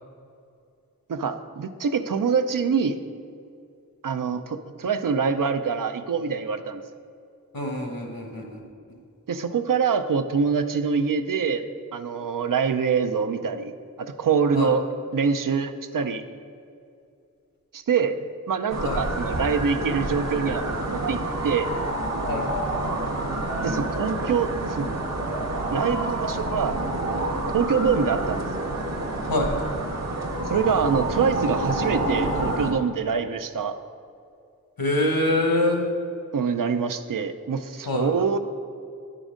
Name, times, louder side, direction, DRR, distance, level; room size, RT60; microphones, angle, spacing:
voice 1, 1.1-3.0 4.0-6.8 9.3-11.6 11.9-14.9 15.1-16.2 17.7-18.2 18.5-21.2 21.4-21.7 23.6-24.9 25.7-27.3 27.5-28.5 30.5-33.8 36.3-38.4, right 6 dB, 70° right, 9 dB, 0.5 m, -25 dB
voice 2, 7.5-8.6 14.5-14.7 18.8-19.0 22.3-22.5 29.3-29.5 34.8-35.9 37.9-38.1, left 1 dB, 80° left, 1 dB, 1.2 m, -25 dB
sound 1, 18.7-32.7, right 1 dB, 50° right, 0.9 m, -28 dB
9.9 x 3.8 x 5.0 m, 2.5 s
wide cardioid pair, 65°, 34 cm